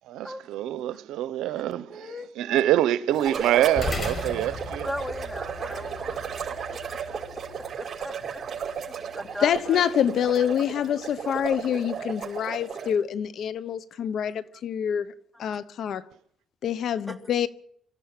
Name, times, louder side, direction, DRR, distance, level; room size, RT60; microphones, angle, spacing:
voice 1, 0.1-4.9, right 13 dB, 90° right, 0.9 m, -26 dB
voice 2, 1.9-2.6 4.8-6.6 7.8-8.5 8.9-9.9 14.2-14.4 15.3-15.6 17.1-17.2, equal, 10° left, 3.0 m, -38 dB
sound 1, 3.1-13.0, right 7 dB, 50° right, 5.3 m, -34 dB
sound 2, 3.8-12.4, left 3 dB, 45° left, 6.1 m, -40 dB
voice 3, 9.4-15.1 15.4-16.0 16.6-17.5, left 9 dB, 70° left, 1.0 m, -26 dB
24.0 x 14.5 x 9.0 m
cardioid pair, 90°, 0 cm